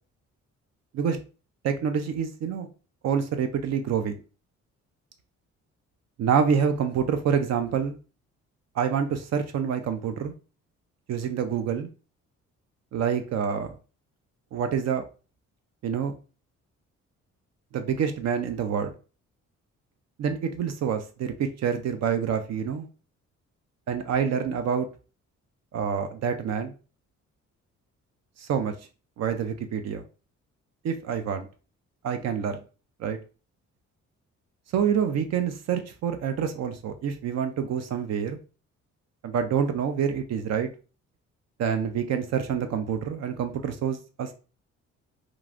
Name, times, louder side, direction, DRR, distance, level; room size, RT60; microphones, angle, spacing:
voice 1, 1.6-2.7 3.0-4.2 6.2-8.0 8.8-10.3 11.1-11.9 12.9-13.8 14.5-15.0 15.8-16.2 17.7-18.9 20.2-22.9 23.9-24.9 25.7-26.7 28.4-28.7 29.2-30.0 30.8-31.5 32.0-32.6 33.0-33.2 34.7-38.4 39.2-40.7 41.6-44.3, right 7 dB, 60° right, 7 dB, 0.5 m, -27 dB
3.0 x 2.5 x 2.4 m, 0.35 s
cardioid pair, 90°, 30 cm